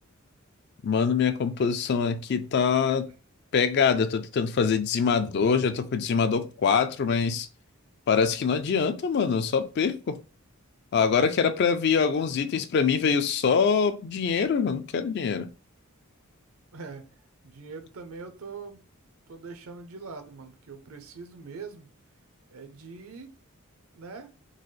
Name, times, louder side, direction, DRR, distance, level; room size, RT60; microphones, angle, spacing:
voice 1, 0.8-3.1 3.5-7.5 8.1-10.2 10.9-15.5, left 6 dB, 50° left, 0.3 m, -24 dB
voice 2, 16.7-17.0 17.4-18.8 19.3-21.9 22.5-23.3 23.9-24.3, right 4 dB, 80° right, 0.7 m, -42 dB
3.8 x 2.4 x 3.2 m
head